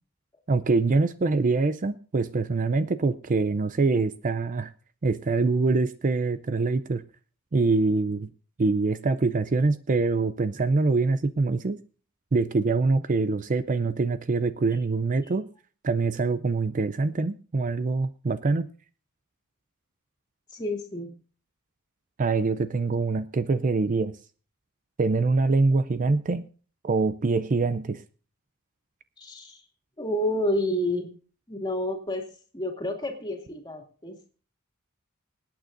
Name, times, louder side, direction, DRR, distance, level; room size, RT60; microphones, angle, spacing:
voice 1, 0.5-4.7 5.0-7.0 7.5-8.3 8.6-11.8 12.3-15.5 15.8-18.7 22.2-24.1 25.0-26.5 26.8-28.0, right 3 dB, 35° right, 13 dB, 0.5 m, -24 dB
voice 2, 20.5-21.1 29.2-29.6 30.0-31.1 31.5-34.2, left 1 dB, 20° left, 2 dB, 2.5 m, -30 dB
26.5 x 9.0 x 2.6 m, 0.39 s
head